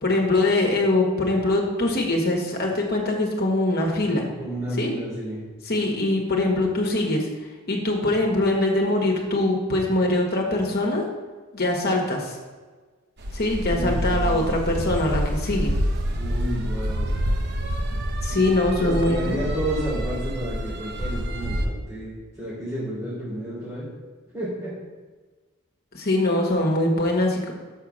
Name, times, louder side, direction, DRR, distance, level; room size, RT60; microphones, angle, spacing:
voice 1, 0.0-4.3 4.8-4.9 5.7-7.2 7.7-11.1 11.5-12.4 13.3-15.7 18.2-19.4 25.9-27.5, left 2 dB, 50° left, 0 dB, 1.5 m, -23 dB
voice 2, 4.4-5.4 13.7-14.6 16.2-17.1 18.3-18.4 18.8-23.9 24.3-24.7, right 1 dB, 15° right, -9 dB, 2.9 m, -31 dB
sound 1, 13.2-21.7, equal, 50° right, 0.8 m, -27 dB
6.5 x 5.7 x 6.4 m, 1.3 s
head